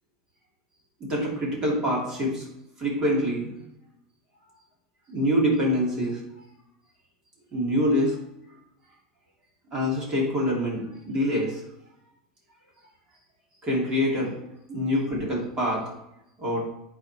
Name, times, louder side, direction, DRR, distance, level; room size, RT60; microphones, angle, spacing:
voice 1, 1.0-2.5 2.8-3.5 5.1-6.2 7.5-8.2 9.7-11.6 13.6-14.3 14.7-15.8 16.4-16.6, equal, 20° right, -3 dB, 2.9 m, -25 dB
10.5 x 4.2 x 4.5 m, 0.83 s
supercardioid pair, 165°, 3 cm